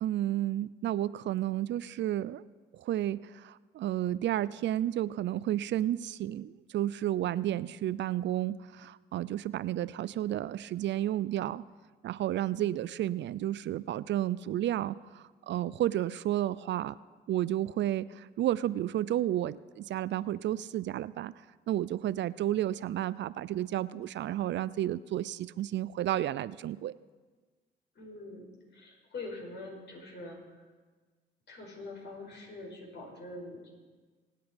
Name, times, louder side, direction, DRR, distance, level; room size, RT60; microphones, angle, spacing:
voice 1, 0.0-2.4 2.7-11.6 12.0-17.0 17.3-21.3 21.7-26.9, right 12 dB, 65° right, 18 dB, 0.5 m, -32 dB
voice 2, 27.9-28.5 28.7-30.6 31.5-33.7, left 2 dB, 60° left, 0 dB, 5.0 m, -44 dB
25.5 x 9.3 x 5.2 m, 1.4 s
cardioid pair, 90°, 20 cm